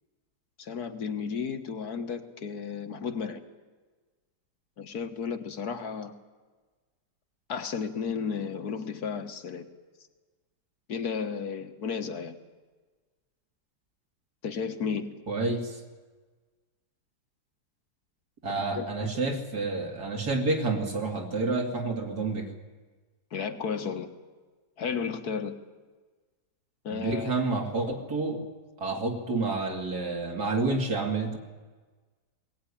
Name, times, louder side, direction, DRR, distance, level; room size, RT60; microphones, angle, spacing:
voice 1, 0.6-3.4 4.8-6.1 7.5-9.7 10.9-12.4 14.4-15.1 18.8-18.9 23.3-24.1 24.8-25.6 26.8-27.4, left 6 dB, 65° left, 7 dB, 1.8 m, -33 dB
voice 2, 15.3-15.8 18.4-22.5 26.9-28.4 28.8-31.4, right 3 dB, 65° right, 2 dB, 3.3 m, -29 dB
21.0 x 18.0 x 10.0 m, 1.3 s
omnidirectional pair, 1.8 m